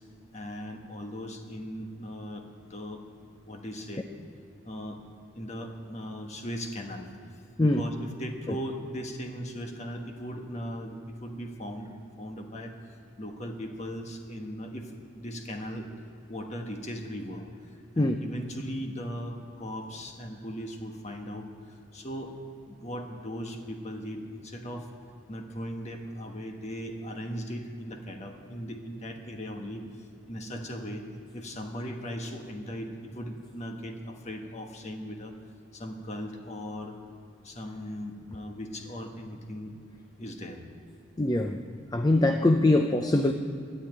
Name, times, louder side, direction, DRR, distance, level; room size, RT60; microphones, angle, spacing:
voice 1, 0.3-4.1 4.6-5.0 5.3-7.1 7.3-11.9 12.2-15.9 16.3-17.5 17.9-22.4 22.7-24.9 25.3-29.8 30.3-31.1 31.3-35.3 35.7-37.0 37.4-39.7 40.2-40.6, equal, 35° left, 3 dB, 1.4 m, -38 dB
voice 2, 41.2-41.6 41.9-43.3, left 2 dB, 20° left, 6 dB, 0.5 m, -22 dB
13.0 x 9.9 x 9.0 m, 2.6 s
head